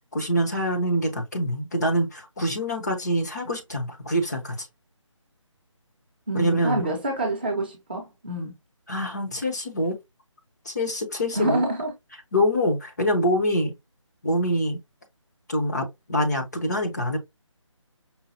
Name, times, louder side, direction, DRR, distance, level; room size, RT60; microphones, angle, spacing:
voice 1, 0.1-4.7 6.3-6.8 8.9-10.0 10.6-11.6 12.3-13.7 14.2-14.8 15.5-17.2, equal, 35° left, 1.0 m, -25 dB
voice 2, 6.3-8.5 11.3-11.9, right 2 dB, 20° right, 0.8 m, -27 dB
5.5 x 2.2 x 2.7 m
figure-of-eight pair, 175°, 16 cm